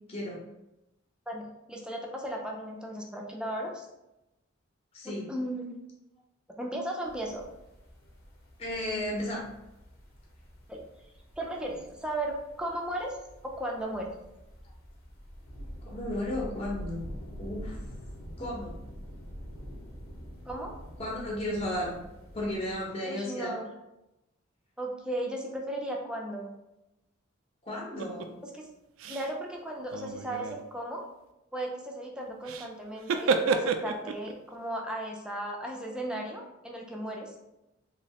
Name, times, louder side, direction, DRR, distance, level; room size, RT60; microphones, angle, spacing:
voice 1, 0.1-0.4 4.9-5.3 8.6-9.4 15.8-17.0 17.4-17.8 18.4-18.8 21.0-21.9 22.3-23.6 27.6-28.3, left 1 dB, 30° left, -4 dB, 0.8 m, -34 dB
voice 2, 1.3-3.9 5.0-5.7 6.6-7.5 10.7-10.8 11.4-13.2 13.4-14.1 20.5-20.7 23.0-23.7 24.8-26.5 28.4-28.7 29.1-31.0 31.5-37.4, right 1 dB, 5° right, 0 dB, 0.5 m, -36 dB
sound 1, 7.0-22.8, equal, 85° left, 1.0 m, -46 dB
sound 2, 28.0-28.3 29.0-29.3 29.8-30.6 32.4-32.7 33.0-34.3, right 4 dB, 70° right, 0.3 m, -30 dB
3.0 x 3.0 x 2.8 m, 0.92 s
head